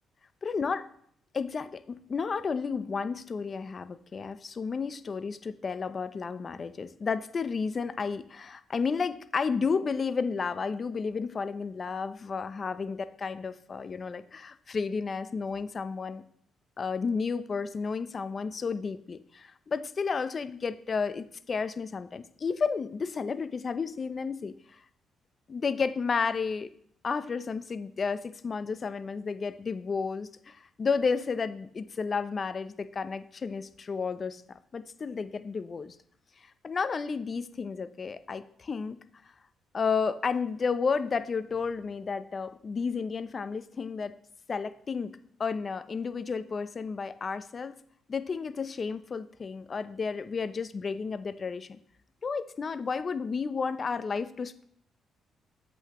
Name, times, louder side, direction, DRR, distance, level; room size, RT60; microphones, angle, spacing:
voice 1, 0.4-0.8 1.3-16.2 16.8-24.5 25.5-26.7 27.0-34.4 34.7-36.0 36.6-39.0 39.7-44.1 44.5-47.8 48.1-51.8 52.2-54.6, left 5 dB, 40° left, 12 dB, 0.5 m, -32 dB
7.8 x 5.8 x 2.9 m, 0.64 s
cardioid pair, 90°, 0 cm